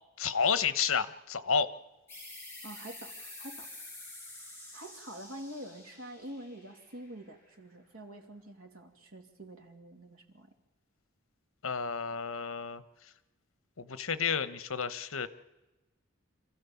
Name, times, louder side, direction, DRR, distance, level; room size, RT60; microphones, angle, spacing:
voice 1, 0.2-1.7 11.6-12.8 13.8-15.3, left 6 dB, 75° left, 13 dB, 1.0 m, -30 dB
sound 1, 2.1-7.4, left 2 dB, 10° left, 6.3 m, -48 dB
voice 2, 2.6-3.7 4.7-10.5, right 1 dB, 85° right, 4 dB, 2.6 m, -46 dB
27.0 x 15.0 x 7.1 m, 1.1 s
head